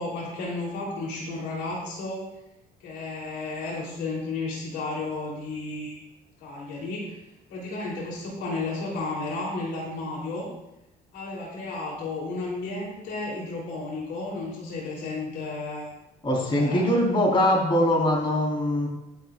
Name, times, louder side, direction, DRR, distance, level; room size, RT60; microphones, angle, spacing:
voice 1, 0.0-2.2 2.8-6.0 6.4-7.2 7.5-10.5 11.1-15.8 16.3-16.8, left 3 dB, 80° left, -3 dB, 3.4 m, -33 dB
voice 2, 16.2-18.9, left 1 dB, 30° left, -3 dB, 4.2 m, -22 dB
21.5 x 7.7 x 2.4 m, 0.89 s
cardioid pair, 110°, 17 cm